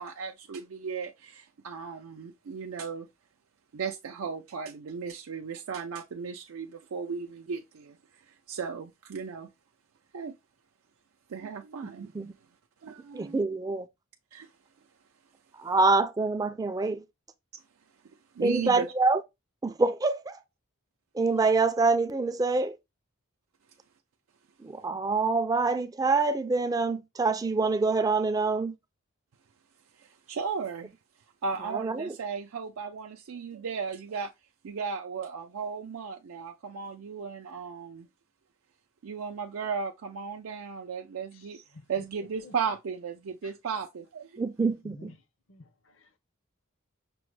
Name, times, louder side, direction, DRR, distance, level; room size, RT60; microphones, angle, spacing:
voice 1, 0.0-3.1 3.7-9.5 10.1-10.3 11.3-12.1 12.8-13.4 14.3-14.5 17.5-17.6 18.3-18.9 30.0-30.9 31.4-34.3 34.6-38.1 39.0-44.4, right 5 dB, 90° right, 0.4 m, -36 dB
voice 2, 13.1-13.9 15.6-17.0 18.4-19.2 19.6-20.3 21.2-22.8 24.6-28.7 31.7-32.1 44.4-45.1, right 3 dB, 15° right, 0.3 m, -26 dB
voice 3, 42.2-42.5 44.8-45.1 45.5-46.2, left 2 dB, 65° left, 0.6 m, -50 dB
6.0 x 2.1 x 3.1 m
head